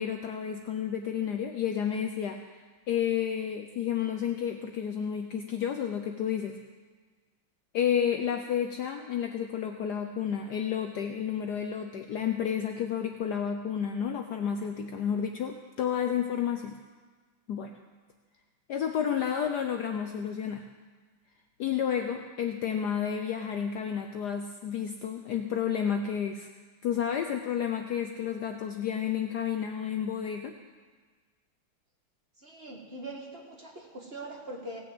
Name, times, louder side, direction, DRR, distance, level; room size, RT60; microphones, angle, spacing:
voice 1, 0.0-2.4 2.9-6.6 7.7-16.8 17.5-17.7 18.7-20.7 21.6-26.5 26.8-30.6, left 8 dB, 65° left, 5 dB, 1.1 m, -31 dB
voice 2, 32.4-34.8, right 1 dB, 30° right, -1 dB, 1.7 m, -42 dB
17.0 x 6.4 x 7.8 m, 1.4 s
omnidirectional pair, 2.3 m